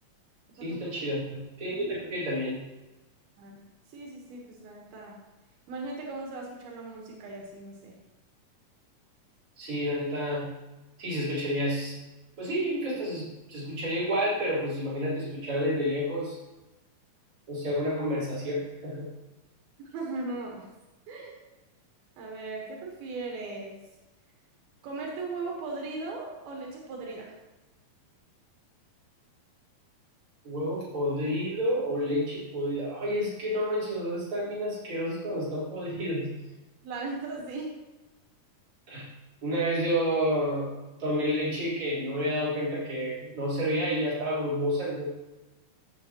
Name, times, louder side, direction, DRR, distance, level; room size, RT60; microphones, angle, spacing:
voice 1, 0.6-2.6 9.6-10.5 11.0-12.0 12.4-16.4 17.5-19.1 30.4-36.3 38.9-39.1 39.4-45.1, equal, 35° right, -9 dB, 4.6 m, -30 dB
voice 2, 3.9-5.2 5.7-8.0 19.8-20.7 21.1-21.3 22.2-23.8 24.8-27.4 36.8-37.7, right 3 dB, 85° right, -1 dB, 3.3 m, -38 dB
16.5 x 7.2 x 3.0 m, 1.1 s
omnidirectional pair, 4.2 m